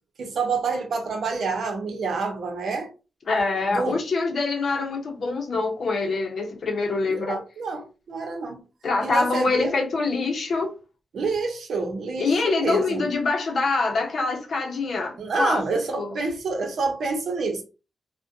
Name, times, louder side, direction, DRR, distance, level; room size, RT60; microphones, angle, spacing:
voice 1, 0.2-2.9 3.7-4.0 7.1-8.6 9.0-9.7 11.1-13.1 15.2-17.6, right 4 dB, 80° right, 0.7 m, -28 dB
voice 2, 3.3-7.4 8.8-10.7 12.2-15.6 16.0-16.1, left 3 dB, 60° left, 0.6 m, -25 dB
2.4 x 2.1 x 2.6 m
wide cardioid pair, 120°, 0 cm